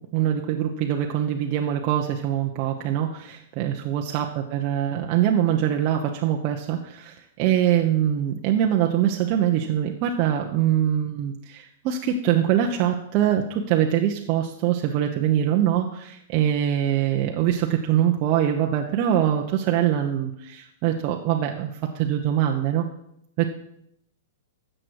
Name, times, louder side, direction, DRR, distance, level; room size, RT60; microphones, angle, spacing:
voice 1, 0.1-22.9 23.4-23.5, right 10 dB, 40° right, 1 dB, 1.0 m, -23 dB
13.0 x 7.7 x 4.8 m, 0.75 s
hypercardioid pair, 110°, 0 cm